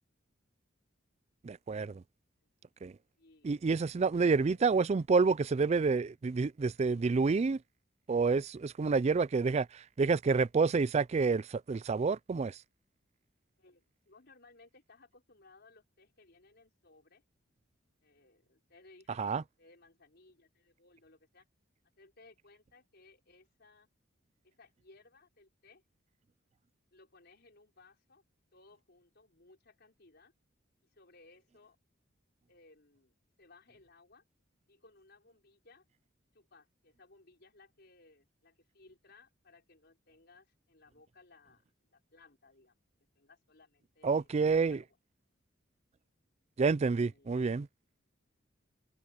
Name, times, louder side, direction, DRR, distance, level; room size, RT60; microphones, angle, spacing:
voice 1, 1.4-2.0 2.8-2.9 3.4-7.6 8.1-12.6 19.2-19.4 44.0-44.8 46.6-47.7, right 4 dB, 35° right, 0.4 m, -28 dB
voice 2, 3.2-3.5 4.3-4.6 13.6-17.2 18.0-21.4 22.0-23.9 24.4-25.8 26.9-28.2 28.5-30.3 30.9-31.8 32.5-34.2 34.7-35.8 36.3-41.6 41.9-42.8 43.1-45.0 47.0-47.4, left 3 dB, 55° left, 5.0 m, -62 dB
head